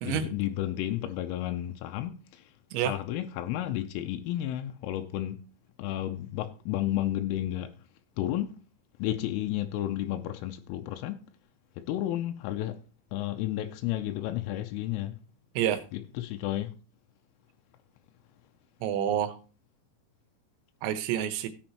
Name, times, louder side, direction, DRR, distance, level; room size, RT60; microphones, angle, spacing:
voice 1, 0.0-2.2 2.9-5.4 5.8-7.7 8.2-8.5 9.0-11.2 11.9-12.8 13.1-15.2 15.9-16.7, left 13 dB, 85° left, 3.3 m, -32 dB
voice 2, 18.8-19.3 20.8-21.5, right 10 dB, 75° right, 3.2 m, -28 dB
15.0 x 8.1 x 3.0 m
omnidirectional pair, 5.6 m